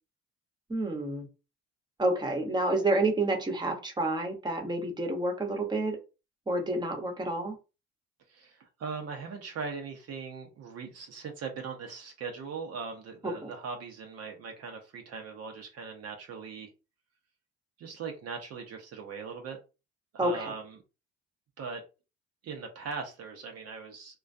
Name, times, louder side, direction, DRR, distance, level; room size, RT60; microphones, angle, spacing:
voice 1, 0.7-1.3 2.0-6.0 6.5-7.5 13.2-13.5 20.2-20.5, right 2 dB, 15° right, 0.8 m, -29 dB
voice 2, 8.3-16.7 17.8-19.6 20.1-20.8 21.6-21.8 22.4-24.2, right 5 dB, 55° right, 0.6 m, -40 dB
2.2 x 2.2 x 2.5 m
supercardioid pair, 80°, 30 cm